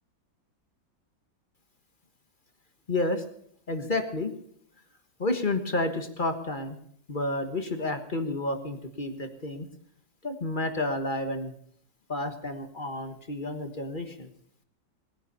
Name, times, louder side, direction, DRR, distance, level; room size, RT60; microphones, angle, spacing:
voice 1, 2.9-3.2 3.7-4.3 5.2-6.7 7.1-9.7 10.2-11.5 12.1-14.3, left 2 dB, 30° left, 8 dB, 1.4 m, -30 dB
19.5 x 9.7 x 6.8 m, 0.65 s
omnidirectional pair, 2.0 m